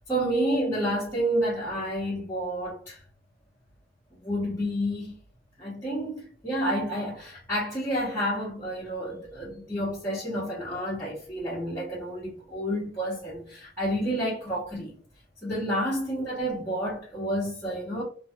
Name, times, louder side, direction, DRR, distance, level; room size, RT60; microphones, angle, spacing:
voice 1, 0.1-3.0 4.2-5.1 5.6-15.0 15.4-18.0, equal, 15° left, 0.8 m, -30 dB
2.6 x 2.3 x 2.2 m
head